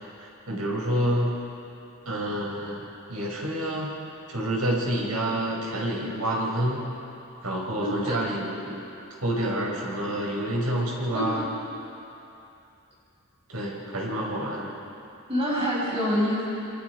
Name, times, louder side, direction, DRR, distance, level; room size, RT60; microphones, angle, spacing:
voice 1, 0.5-1.4 2.1-3.9 4.3-6.8 7.4-8.8 9.2-11.4 13.5-14.7, right 1 dB, 75° right, -3 dB, 5.8 m, -28 dB
voice 2, 7.8-8.2 11.1-11.2 15.3-16.5, equal, 25° right, -5 dB, 6.6 m, -26 dB
28.0 x 24.5 x 4.9 m, 2.7 s
head